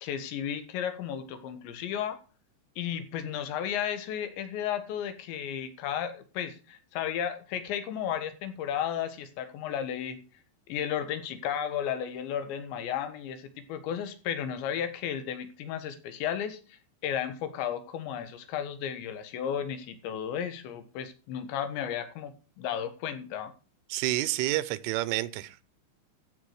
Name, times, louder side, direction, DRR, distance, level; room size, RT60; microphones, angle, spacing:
voice 1, 0.0-2.2 2.8-10.2 10.7-23.5, left 9 dB, 75° left, 3.6 m, -34 dB
voice 2, 23.9-25.6, right 17 dB, 90° right, 3.3 m, -29 dB
14.0 x 8.2 x 4.8 m
omnidirectional pair, 5.5 m